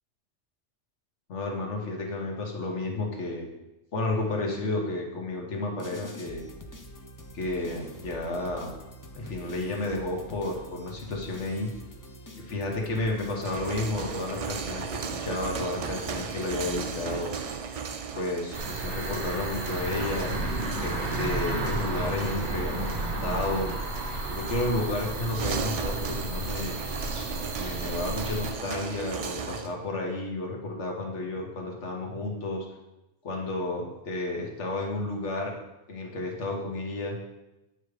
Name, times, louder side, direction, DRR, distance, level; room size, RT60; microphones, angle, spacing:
voice 1, 1.3-3.5 3.9-6.4 7.3-8.7 9.1-11.7 12.4-17.3 18.1-20.3 20.8-23.7 24.3-26.8 27.6-32.6 33.2-35.6 35.9-37.2, left 2 dB, 90° left, 0 dB, 1.6 m, -32 dB
sound 1, 5.8-17.9, left 1 dB, 25° left, 0.4 m, -45 dB
sound 2, 13.3-29.7, right 6 dB, 65° right, 0.3 m, -37 dB
sound 3, 18.5-28.5, right 2 dB, 45° right, 1.1 m, -32 dB
9.1 x 3.3 x 4.8 m, 0.96 s
omnidirectional pair, 1.2 m